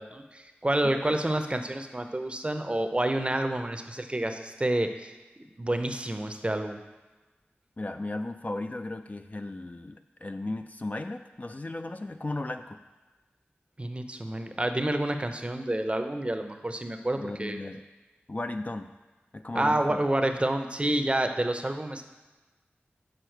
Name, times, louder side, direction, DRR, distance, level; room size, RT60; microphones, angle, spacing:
voice 1, 0.0-5.1 5.6-6.8 13.8-17.6 19.5-22.0, right 1 dB, 25° right, 7 dB, 0.6 m, -28 dB
voice 2, 0.8-1.2 7.8-12.8 17.2-17.8 18.3-18.9 19.3-20.0, left 2 dB, 35° left, 7 dB, 0.3 m, -35 dB
6.5 x 4.7 x 4.5 m, 1.2 s
cardioid pair, 45°, 4 cm